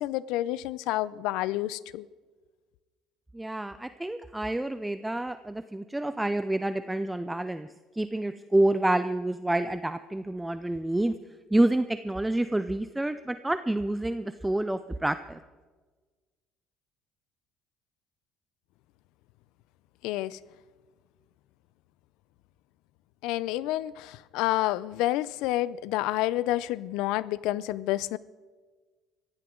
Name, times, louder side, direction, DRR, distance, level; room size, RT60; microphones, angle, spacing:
voice 1, 0.0-2.0 20.0-20.4 23.2-28.2, left 15 dB, 85° left, 0.5 m, -29 dB
voice 2, 3.3-7.7 7.9-11.1 11.5-15.4, right 1 dB, 5° right, 0.5 m, -28 dB
23.0 x 16.0 x 3.8 m
cardioid pair, 130°, 0 cm